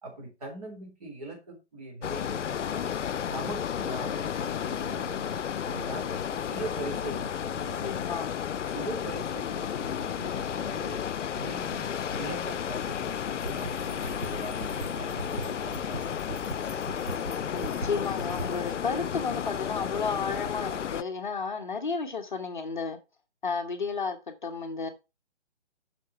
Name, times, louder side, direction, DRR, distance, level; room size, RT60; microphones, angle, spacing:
voice 1, 0.0-2.9 3.3-8.1 8.6-11.0 11.3-16.5, right 2 dB, 35° right, 3.4 m, -41 dB
sound 1, 2.0-21.0, left 8 dB, 90° left, 0.6 m, -32 dB
voice 2, 7.8-8.3 17.5-23.0 23.4-24.2 24.4-24.9, left 5 dB, 45° left, 1.0 m, -32 dB
sound 2, 13.4-18.7, right 3 dB, 60° right, 1.4 m, -40 dB
8.3 x 5.9 x 4.5 m
hypercardioid pair, 170°, 35 cm